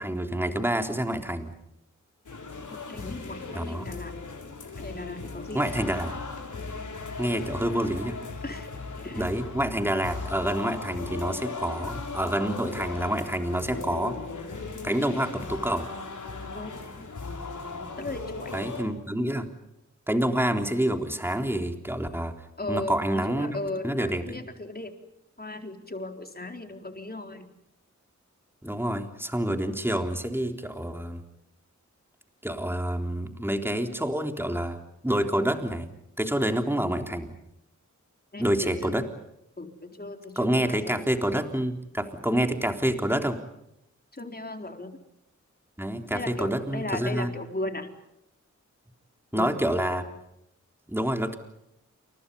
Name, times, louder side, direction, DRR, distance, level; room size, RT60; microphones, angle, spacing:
voice 1, 0.0-1.5 3.6-3.9 5.5-6.1 7.2-8.2 9.2-14.2 14.8-15.9 18.5-19.5 20.1-22.3 22.7-23.6 23.8-24.4 28.6-31.2 32.4-34.8 35.0-35.9 36.2-37.3 38.4-39.1 40.4-43.4 45.8-47.3 49.3-50.1 50.9-51.4, right 1 dB, 5° right, 5 dB, 3.6 m, -27 dB
sound 1, 2.2-18.8, left 4 dB, 85° left, 6.3 m, -37 dB
voice 2, 2.9-4.1 4.8-5.7 8.4-8.7 9.0-9.2 16.5-16.7 17.0-17.1 18.0-18.7 22.6-24.9 25.4-27.5 38.3-39.0 39.6-41.1 44.1-45.0 46.1-47.9 49.3-49.6, left 2 dB, 30° left, 5 dB, 4.2 m, -36 dB
29.5 x 29.0 x 5.5 m, 0.81 s
wide cardioid pair, 90°, 30 cm